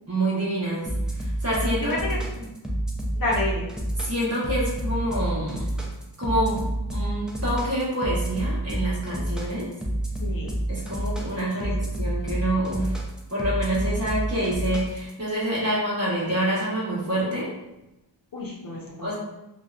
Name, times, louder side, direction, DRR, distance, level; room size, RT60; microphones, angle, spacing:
voice 1, 0.1-0.9 1.1-1.9 4.0-5.6 6.2-9.7 10.7-13.0 13.3-17.5 19.0-19.1, right 1 dB, 35° right, -7 dB, 1.0 m, -27 dB
sound 1, 0.9-15.1, right 1 dB, ahead, 0.4 m, -28 dB
voice 2, 1.8-2.2 3.1-3.7 10.2-10.5 11.4-11.9 18.3-19.1, left 1 dB, 50° left, -3 dB, 0.6 m, -30 dB
2.7 x 2.1 x 2.3 m, 0.94 s
wide cardioid pair, 70°, 45 cm